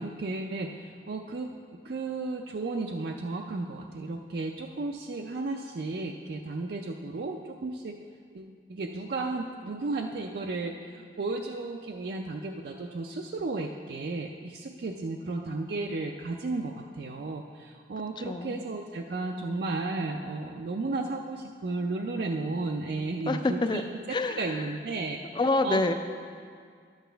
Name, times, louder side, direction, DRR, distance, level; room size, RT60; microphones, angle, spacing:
voice 1, 0.0-1.5 1.8-8.0 8.3-24.0 24.3-25.2 25.6-25.8, right 3 dB, 65° right, 2 dB, 0.4 m, -34 dB
voice 2, 18.2-18.6 23.3-24.7 25.3-25.9, left 2 dB, 25° left, 8 dB, 0.4 m, -28 dB
11.0 x 8.1 x 3.4 m, 2.1 s
head